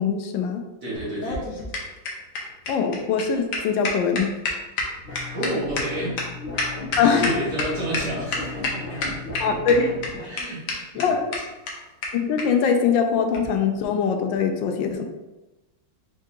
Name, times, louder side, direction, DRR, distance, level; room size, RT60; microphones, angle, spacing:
voice 1, 0.0-0.6 2.7-4.3 7.0-7.3 9.4-9.9 10.9-11.3 12.1-15.0, left 6 dB, 80° left, 5 dB, 1.3 m, -22 dB
voice 2, 0.8-1.4 5.3-6.2 7.0-9.2 10.2-11.1, right 1 dB, 55° right, -8 dB, 1.7 m, -31 dB
sound 1, 0.9-7.6 7.9-8.0 8.3-8.7 9.0-9.7 10.0-10.1 10.4-10.5 10.7-10.8 11.0-11.1 11.3-11.4 11.7-11.8 12.0-12.1 12.4-12.5 13.3-13.5, left 3 dB, 55° left, 1.0 m, -28 dB
sound 2, 5.0-10.4, left 3 dB, 40° left, 1.3 m, -35 dB
4.7 x 3.6 x 2.7 m, 1.0 s
omnidirectional pair, 2.1 m